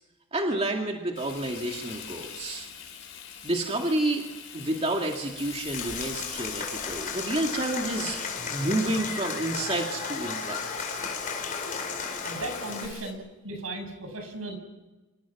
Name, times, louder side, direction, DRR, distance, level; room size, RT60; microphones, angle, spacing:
voice 1, 0.3-3.0 3.4-4.2 4.5-10.6, right 1 dB, 30° right, 1 dB, 2.4 m, -30 dB
Frying (food), 1.2-13.1, left 9 dB, 60° left, 5.4 m, -43 dB
Applause / Crowd, 5.7-12.9, left 5 dB, 40° left, 4.9 m, -34 dB
voice 2, 12.2-14.6, right 2 dB, 85° right, 5 dB, 7.3 m, -36 dB
27.0 x 26.0 x 6.2 m, 1.1 s
head